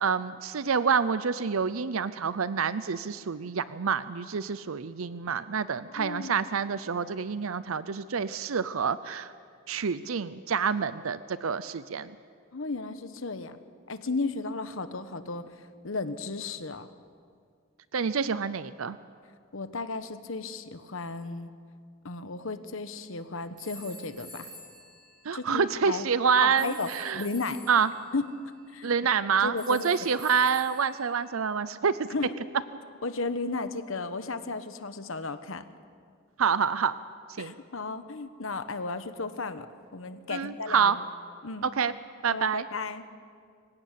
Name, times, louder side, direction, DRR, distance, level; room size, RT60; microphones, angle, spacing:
voice 1, 0.0-9.3 9.7-12.1 17.9-19.0 25.2-27.3 27.7-27.9 28.8-32.1 36.4-36.9 37.4-37.5 40.3-41.0 41.8-41.9 42.2-42.6, right 6 dB, 80° right, 14 dB, 0.6 m, -27 dB
voice 2, 5.9-6.4 12.5-13.6 13.9-15.4 15.8-16.9 19.5-21.5 22.0-24.5 25.3-26.1 26.4-27.6 28.1-28.4 28.7-28.9 29.4-29.9 32.1-32.3 33.0-35.6 37.4-39.7 39.9-40.9 41.4-41.7 42.3-43.0, left 3 dB, 70° left, 10 dB, 1.2 m, -34 dB
sound 1, 23.6-25.8 26.6-28.0 29.6-31.3, right 1 dB, 20° right, 4.6 m, -47 dB
25.5 x 17.0 x 8.4 m, 2.2 s
head